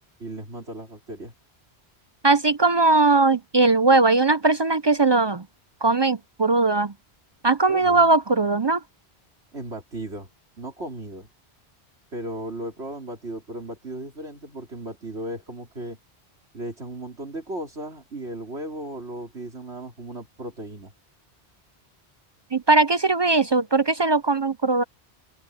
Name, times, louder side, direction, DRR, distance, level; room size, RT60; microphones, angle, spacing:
voice 1, 0.2-1.3 7.7-8.1 9.5-10.3 10.6-11.3 12.1-16.0 16.5-20.9, right 1 dB, 85° right, 4.4 m, -36 dB
voice 2, 2.2-5.5 5.8-6.9 7.4-8.8 22.5-24.8, right 3 dB, 40° right, 0.4 m, -19 dB
open air
omnidirectional pair, 1.1 m